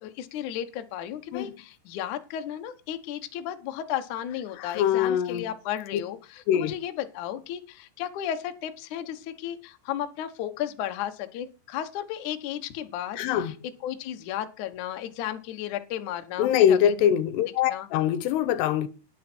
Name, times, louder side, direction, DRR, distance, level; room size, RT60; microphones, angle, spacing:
voice 1, 0.0-13.5 13.8-17.1 17.7-17.9, left 11 dB, 65° left, 2.0 m, -34 dB
voice 2, 4.6-5.5 6.5-6.7 13.2-13.6 16.4-18.9, left 10 dB, 85° left, 2.9 m, -23 dB
10.5 x 10.0 x 4.4 m
omnidirectional pair, 4.9 m